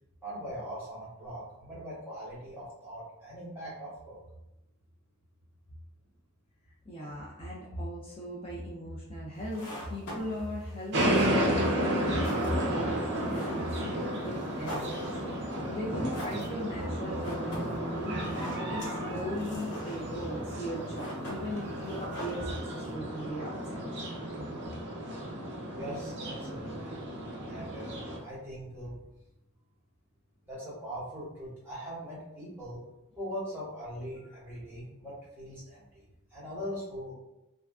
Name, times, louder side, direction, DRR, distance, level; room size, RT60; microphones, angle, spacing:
voice 1, 0.2-4.2 24.7-24.8 25.7-27.0 27.5-29.0 30.5-32.8 33.2-36.0 36.3-37.1, equal, 10° right, -9 dB, 1.0 m, -41 dB
voice 2, 6.9-15.1 15.6-23.9, equal, 25° left, -6 dB, 0.3 m, -38 dB
sound 1, 9.3-22.9, equal, 85° left, 0.8 m, -46 dB
sound 2, 10.9-28.2, right 1 dB, 50° right, 0.5 m, -33 dB
2.4 x 2.3 x 2.3 m, 0.91 s
head